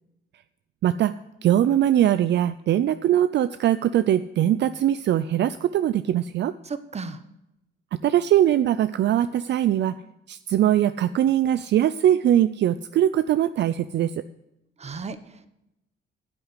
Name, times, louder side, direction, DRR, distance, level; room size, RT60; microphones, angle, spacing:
voice 1, 0.8-1.1 1.4-6.5 8.0-9.9 10.3-14.1, right 11 dB, 60° right, 13 dB, 0.5 m, -21 dB
voice 2, 6.6-7.2 14.8-15.5, right 4 dB, 35° right, 12 dB, 1.1 m, -35 dB
9.9 x 7.9 x 8.4 m, 0.87 s
cardioid pair, 90°, 20 cm